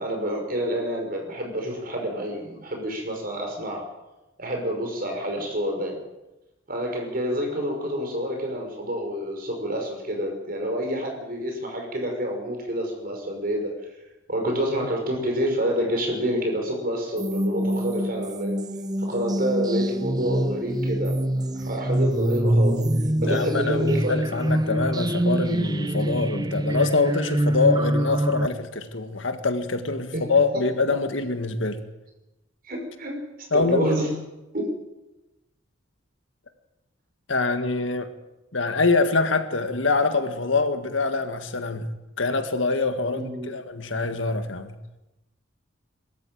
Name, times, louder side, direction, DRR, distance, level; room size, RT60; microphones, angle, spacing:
voice 1, 0.0-3.9 4.4-6.0 6.7-13.7 14.3-18.5 19.0-21.2 21.5-22.8 23.2-24.1 30.1-30.3 30.5-30.6 32.7-33.2 33.5-34.1 34.5-34.8 43.1-43.5, equal, 45° right, 2 dB, 5.8 m, -28 dB
sound 1, 17.2-28.5, right 1 dB, 20° right, 0.8 m, -25 dB
voice 2, 23.2-31.9 33.5-34.0 37.3-38.1 38.5-41.9 42.2-44.8, left 3 dB, 80° left, 8 dB, 1.8 m, -24 dB
22.0 x 13.5 x 9.2 m, 1.0 s
head